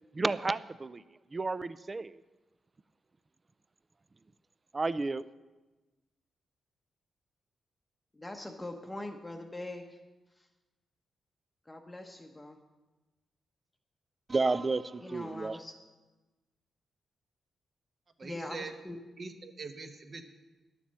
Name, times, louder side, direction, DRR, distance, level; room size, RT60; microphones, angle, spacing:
voice 1, 0.1-1.0 1.3-2.2 4.7-5.3 14.3-15.6, right 3 dB, 25° right, 16 dB, 0.4 m, -31 dB
voice 2, 8.2-9.9 11.7-12.6 15.0-15.7 18.2-19.0, left 1 dB, 15° left, 3 dB, 0.8 m, -42 dB
voice 3, 18.2-18.7 19.2-20.3, right 4 dB, 40° right, 6 dB, 1.0 m, -43 dB
10.5 x 7.2 x 7.4 m, 1.2 s
cardioid pair, 110°, 0 cm